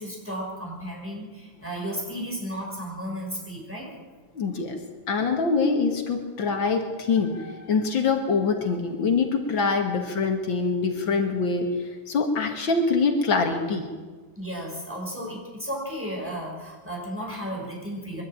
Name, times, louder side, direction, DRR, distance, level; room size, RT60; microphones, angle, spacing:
voice 1, 0.0-3.9 14.4-18.2, equal, 5° right, -3 dB, 5.8 m, -34 dB
voice 2, 4.3-4.8 5.1-11.7 12.1-13.9, left 4 dB, 80° left, 4 dB, 2.7 m, -24 dB
23.5 x 12.5 x 9.0 m, 1.4 s
omnidirectional pair, 2.1 m